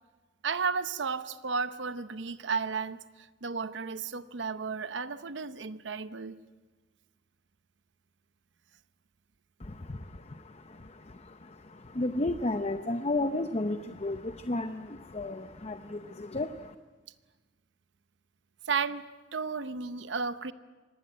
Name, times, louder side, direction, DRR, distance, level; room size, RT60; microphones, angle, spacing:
voice 1, 0.4-6.4 18.7-19.1 19.3-20.5, right 5 dB, 75° right, 13 dB, 0.8 m, -33 dB
voice 2, 9.6-16.7, left 2 dB, 35° left, 9 dB, 0.7 m, -33 dB
24.5 x 19.0 x 9.2 m, 1.3 s
head